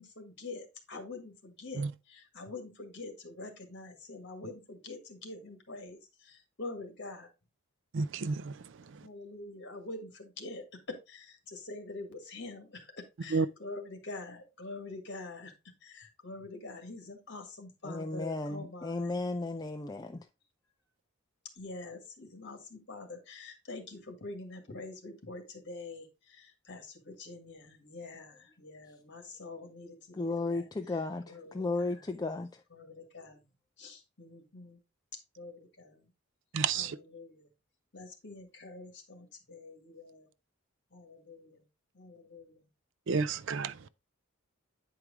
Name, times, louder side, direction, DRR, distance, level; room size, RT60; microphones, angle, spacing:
voice 1, 0.0-1.9 2.1-6.0 6.6-7.3 9.0-10.6 11.1-12.8 13.2-15.5 15.8-19.1 21.6-26.0 26.7-30.6 31.3-31.4 32.8-33.4 33.8-34.8 35.4-36.0 36.7-37.4 37.9-40.3 40.9-41.5 42.0-42.6, left 2 dB, 55° left, 1.8 m, -45 dB
voice 2, 7.9-8.5 13.3-13.5 36.5-37.0 43.1-43.7, right 5 dB, 60° right, 0.5 m, -30 dB
voice 3, 17.8-20.3 30.1-32.6, left 3 dB, 20° left, 0.4 m, -34 dB
9.0 x 4.7 x 3.6 m
head